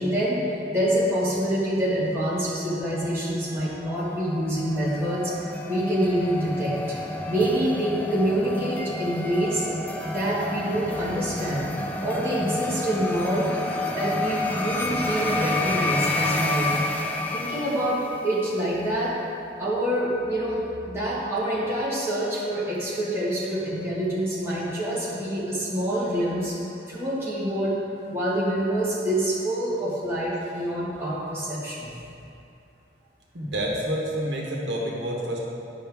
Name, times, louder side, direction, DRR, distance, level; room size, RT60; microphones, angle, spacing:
voice 1, 0.0-7.0 7.2-9.7 10.1-11.7 12.0-16.7 17.3-19.2 19.6-26.6 26.9-27.8 28.1-31.9, right 1 dB, 15° right, -8 dB, 1.5 m, -26 dB
sound 1, 3.9-18.5, left 2 dB, 10° left, 0.4 m, -30 dB
voice 2, 33.3-35.4, equal, 80° right, -2 dB, 1.1 m, -28 dB
9.9 x 5.5 x 3.5 m, 2.7 s
head